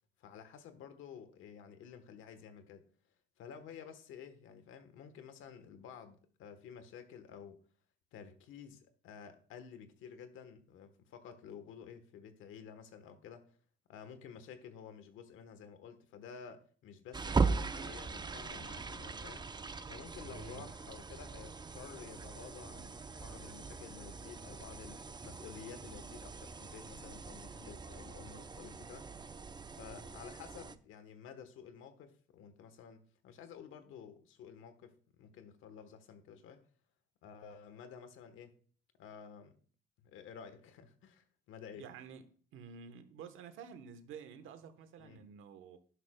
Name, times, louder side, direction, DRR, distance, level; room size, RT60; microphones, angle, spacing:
voice 1, 0.2-2.8 3.4-7.6 8.1-13.6 13.9-19.5 19.9-29.1 29.7-36.6 37.2-38.5 39.0-39.6 40.0-41.9 45.0-45.3, left 7 dB, 90° left, 1.3 m, -52 dB
sound 1, 17.1-30.8, right 4 dB, 20° right, 0.6 m, -40 dB
voice 2, 20.2-20.7 41.7-42.3 42.5-45.8, right 7 dB, 85° right, 1.2 m, -50 dB
11.5 x 11.0 x 2.3 m
cardioid pair, 90°, 20 cm